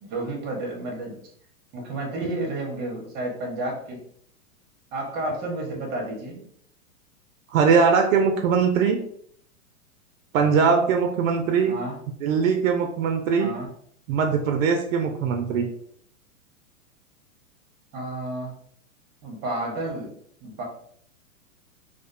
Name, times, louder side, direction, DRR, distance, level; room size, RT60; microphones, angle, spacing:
voice 1, 0.0-1.2 1.7-4.0 4.9-6.4 11.7-12.0 13.4-13.7 17.9-18.6 19.2-20.1 20.4-20.6, right 2 dB, 25° right, 0 dB, 0.6 m, -31 dB
voice 2, 7.5-9.0 10.3-11.7 12.2-13.5 14.1-15.7, right 6 dB, 65° right, 4 dB, 0.5 m, -21 dB
2.4 x 2.1 x 2.4 m, 0.64 s
hypercardioid pair, 125°, 44 cm